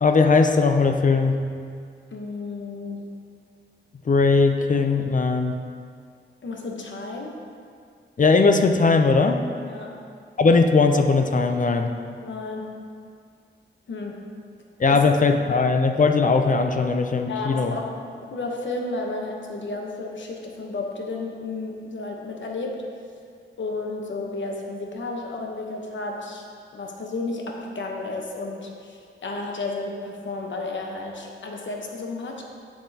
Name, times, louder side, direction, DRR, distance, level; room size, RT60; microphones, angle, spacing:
voice 1, 0.0-1.4 4.1-5.6 8.2-9.4 10.4-11.9 14.8-17.8, left 4 dB, 40° left, 6 dB, 0.5 m, -19 dB
voice 2, 2.1-3.2 6.4-7.4 9.7-10.1 12.2-12.8 13.9-14.3 14.9-15.1 17.3-22.9 23.6-26.4 26.7-32.4, left 3 dB, 70° left, 0 dB, 1.0 m, -32 dB
8.0 x 7.3 x 2.8 m, 2.2 s
wide cardioid pair, 95°, 20 cm